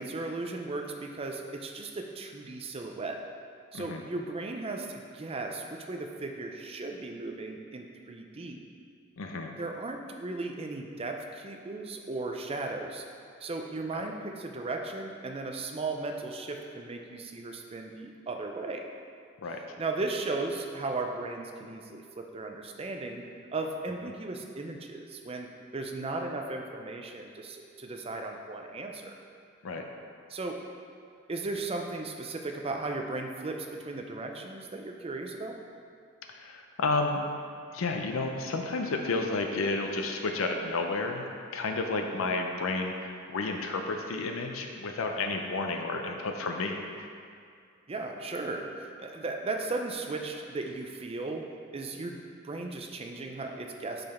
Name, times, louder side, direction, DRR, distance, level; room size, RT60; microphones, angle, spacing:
voice 1, 0.0-3.2 3.7-8.7 9.6-13.1 13.4-18.8 19.5-23.2 23.5-29.1 30.3-30.6 31.3-35.6 47.9-52.2 52.4-54.0, right 3 dB, 30° right, 3 dB, 0.5 m, -36 dB
voice 2, 9.2-9.5 13.9-14.0 19.4-19.6 29.6-29.8 36.3-37.2 37.7-41.2 41.5-46.8, left 3 dB, 90° left, 3 dB, 0.5 m, -31 dB
5.8 x 5.3 x 4.2 m, 2.3 s
head